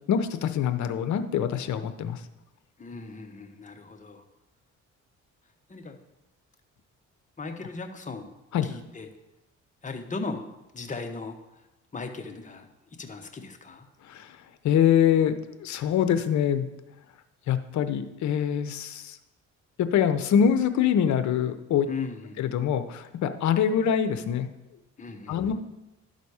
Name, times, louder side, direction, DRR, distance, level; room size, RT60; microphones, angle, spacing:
voice 1, 0.1-2.2 8.5-8.7 14.1-14.3 14.6-16.7 17.5-19.2 19.8-21.9 22.4-24.5 25.3-25.5, left 8 dB, 70° left, 10 dB, 0.7 m, -24 dB
voice 2, 2.8-4.2 5.7-6.0 7.4-8.3 8.6-9.1 9.8-10.4 10.7-11.7 11.9-12.7 13.0-13.9 21.9-22.4 25.0-25.5, left 4 dB, 25° left, 4 dB, 1.0 m, -37 dB
12.0 x 4.2 x 4.8 m, 0.98 s
cardioid pair, 90°, 30 cm